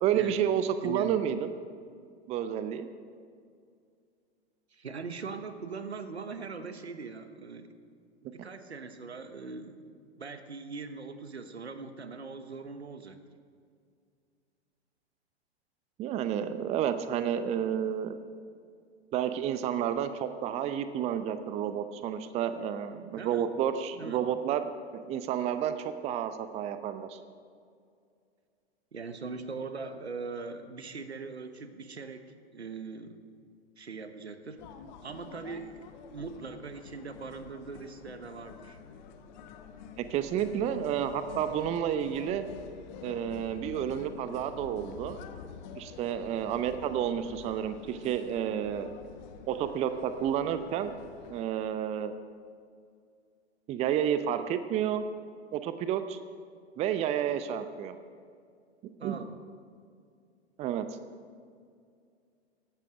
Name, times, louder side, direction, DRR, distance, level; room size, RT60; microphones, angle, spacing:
voice 1, 0.0-1.5 2.3-2.9 16.0-18.2 19.1-27.2 40.0-42.5 43.0-45.2 45.8-48.9 49.5-51.0 51.3-52.1 53.7-55.0 55.5-56.2 56.8-57.9 59.0-59.3 60.6-60.9, right 9 dB, 20° right, 11 dB, 0.6 m, -30 dB
voice 2, 4.7-7.7 8.3-13.2 23.2-23.5 24.0-24.2 28.9-33.3 33.8-34.6 35.0-38.8 59.0-59.3, right 4 dB, 80° right, 9 dB, 1.2 m, -41 dB
sound 1, 34.6-51.4, left 7 dB, 45° left, 1.1 m, -48 dB
16.0 x 12.0 x 4.9 m, 2.3 s
figure-of-eight pair, 100°, 32 cm